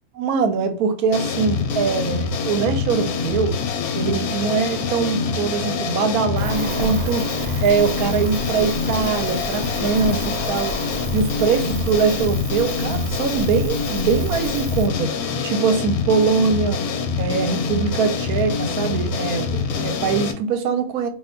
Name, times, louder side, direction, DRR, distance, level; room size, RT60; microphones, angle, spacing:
voice 1, 0.1-3.6 3.9-7.3 7.6-10.8 11.1-15.1 15.4-16.8 17.2-21.1, right 5 dB, 80° right, 1.1 m, -22 dB
sound 1, 1.1-20.3, left 4 dB, 80° left, 1.1 m, -25 dB
Cricket, 6.4-14.9, right 2 dB, 55° right, 1.1 m, -32 dB
2.7 x 2.2 x 3.5 m
omnidirectional pair, 1.6 m